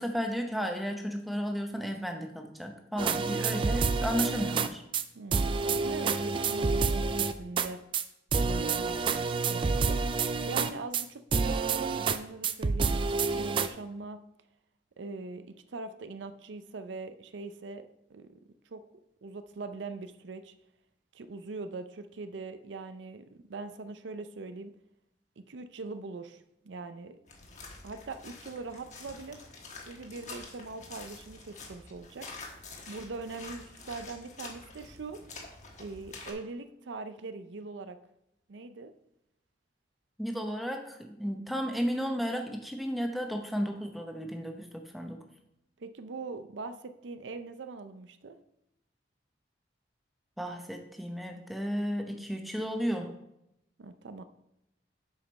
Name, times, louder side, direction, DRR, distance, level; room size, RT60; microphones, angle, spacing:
voice 1, 0.0-4.8 40.2-45.2 50.4-53.1, equal, ahead, 4 dB, 0.8 m, -33 dB
sound 1, 3.0-4.7 4.9-5.0 5.3-7.7 7.9-8.0 8.3-11.0 11.3-12.2 12.4-13.7, right 4 dB, 30° right, 0.3 m, -28 dB
voice 2, 5.1-7.8 8.4-10.0 10.5-14.2 15.0-18.4 18.7-18.8 19.2-20.5 21.1-24.7 25.5-27.2 27.8-29.4 29.9-32.3 32.9-35.2 35.8-38.0 38.5-38.9 45.8-48.4 53.8-54.2, right 3 dB, 85° right, 10 dB, 0.5 m, -42 dB
sound 2, 27.3-36.3, left 3 dB, 40° left, 1.3 m, -47 dB
7.5 x 5.1 x 5.3 m, 0.83 s
head